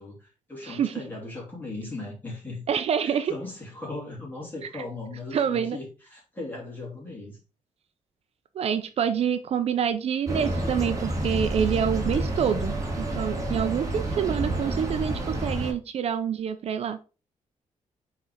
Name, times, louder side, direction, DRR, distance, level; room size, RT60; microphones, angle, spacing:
voice 1, 0.0-2.6 3.0-7.4, left 2 dB, 15° left, 3.2 m, -38 dB
voice 2, 0.6-0.9 2.7-3.3 4.7-4.8 5.3-5.8 8.6-17.0, right 8 dB, 55° right, 0.5 m, -27 dB
sound 1, 10.3-15.7, right 1 dB, 25° right, 1.8 m, -29 dB
5.9 x 4.3 x 4.9 m
wide cardioid pair, 180°, 13 cm